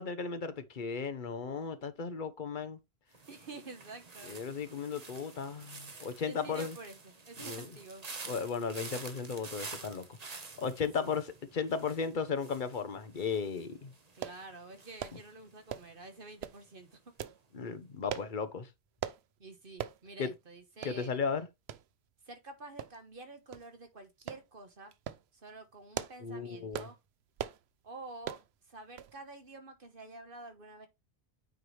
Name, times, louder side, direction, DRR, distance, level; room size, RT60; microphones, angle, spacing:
voice 1, 0.0-2.8 4.3-6.7 7.4-7.7 8.2-10.1 10.6-13.9 17.5-18.7 20.2-20.3 20.8-21.5 26.2-26.9, left 5 dB, 50° left, 1.1 m, -35 dB
sound 1, 3.1-16.2 16.4-16.9, right 4 dB, 40° right, 1.2 m, -49 dB
voice 2, 3.3-4.3 6.2-8.1 11.0-11.1 14.1-17.0 19.4-21.1 22.2-24.9 25.3-27.0 27.8-30.9, right 3 dB, 55° right, 1.5 m, -49 dB
sound 2, 14.2-14.4 15.0-15.2 15.7-16.0 16.4-16.6 17.2-17.4 18.1-18.3 19.0-19.2 19.8-20.0 20.4-20.5 20.8-21.0 21.7-21.8 22.8-23.2 23.5-23.7 24.3-24.4 24.9-25.2 25.7-26.3 26.7-27.0 27.4-27.6 28.2-28.5 29.0-29.2 29.4-29.5, right 10 dB, 75° right, 0.9 m, -40 dB
9.2 x 4.7 x 3.3 m
omnidirectional pair, 1.1 m